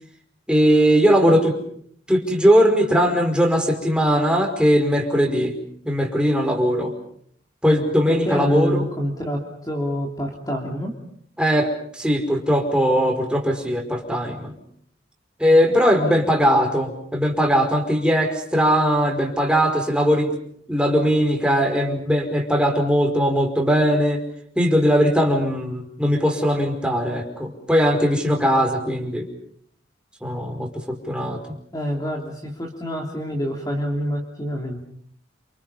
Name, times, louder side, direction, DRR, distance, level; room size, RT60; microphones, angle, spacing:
voice 1, 0.5-1.5 2.1-5.5 5.8-6.9 7.6-8.9 11.4-14.5 15.4-20.3 20.7-24.2 24.5-29.3 30.2-31.4, equal, 5° right, 3 dB, 5.1 m, -19 dB
voice 2, 8.1-10.9 16.0-16.2 31.7-34.8, equal, 20° left, 1 dB, 3.2 m, -27 dB
29.5 x 28.0 x 5.6 m, 0.65 s
head